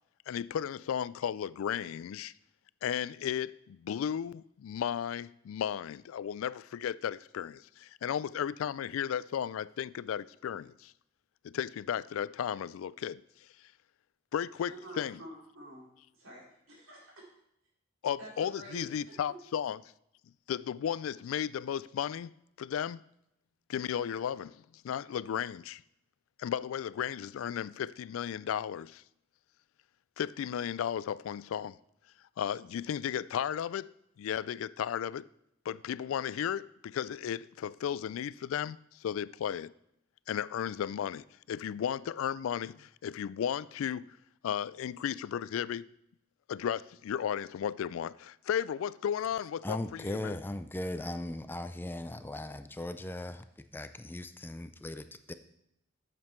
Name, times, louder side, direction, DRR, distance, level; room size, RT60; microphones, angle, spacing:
voice 1, 0.3-2.3 2.8-10.9 11.4-13.2 14.3-15.2 18.0-19.8 20.5-23.0 23.7-25.8 26.4-29.0 30.2-31.8 32.4-33.9 34.2-35.3 35.7-39.7 40.3-44.2 44.4-45.9 46.5-50.4, left 9 dB, 90° left, 0.3 m, -34 dB
voice 2, 14.7-17.3 18.2-19.4, right 1 dB, 90° right, 3.8 m, -49 dB
voice 3, 49.6-55.3, left 1 dB, 10° left, 0.4 m, -38 dB
9.4 x 7.7 x 4.4 m
head